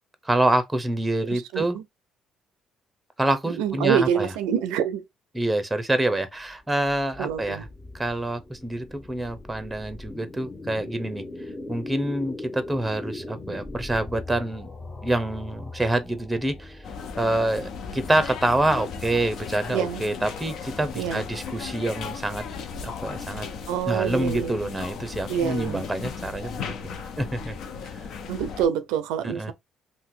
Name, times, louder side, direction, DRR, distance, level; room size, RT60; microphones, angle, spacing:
voice 1, 0.2-1.8 3.2-4.3 5.3-7.7 7.9-11.2 11.7-14.7 15.0-16.8 17.2-22.5 22.8-23.5 23.9-27.5 27.8-27.9 29.2-29.5, right 1 dB, 10° right, 0.7 m, -26 dB
voice 2, 1.3-1.8 3.6-5.0 7.2-7.6 19.7-20.0 21.0-21.2 23.7-24.5 25.3-25.9 28.3-29.5, right 8 dB, 90° right, 0.4 m, -26 dB
sound 1, 6.4-19.5, left 2 dB, 20° left, 0.8 m, -40 dB
sound 2, 16.8-28.7, left 5 dB, 65° left, 0.6 m, -36 dB
2.7 x 2.1 x 3.7 m
cardioid pair, 85°, 0 cm